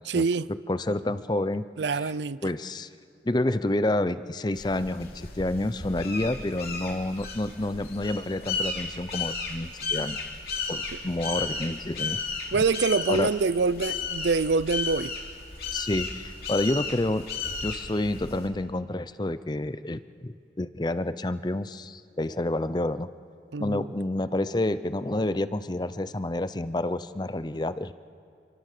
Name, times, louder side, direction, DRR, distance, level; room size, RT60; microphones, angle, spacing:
voice 1, 0.0-0.5 1.8-2.4 12.5-15.1 23.5-23.9, right 4 dB, 80° right, 0.6 m, -25 dB
voice 2, 0.7-1.6 1.9-2.1 2.4-2.9 3.2-10.2 10.7-12.2 13.1-13.3 15.7-17.3 17.6-23.1 23.6-27.9, left 1 dB, 25° left, 0.6 m, -29 dB
sound 1, 4.5-18.5, left 4 dB, 55° left, 3.1 m, -34 dB
27.0 x 24.5 x 6.7 m
head